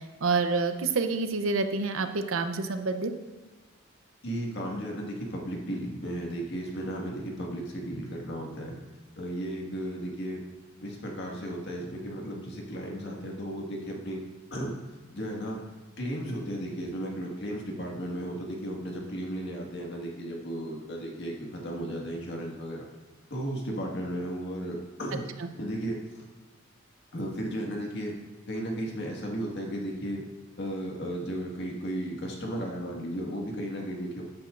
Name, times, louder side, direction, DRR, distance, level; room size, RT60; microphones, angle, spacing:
voice 1, 0.2-3.1, right 4 dB, 75° right, 8 dB, 0.7 m, -27 dB
voice 2, 4.2-8.8 9.2-10.4 10.8-14.2 14.5-14.8 15.1-15.6 16.0-22.9 23.3-25.2 25.6-26.2 27.1-28.2 28.5-30.2 30.6-34.2, equal, 55° left, -1 dB, 1.8 m, -34 dB
13.5 x 8.8 x 2.5 m, 1.3 s
head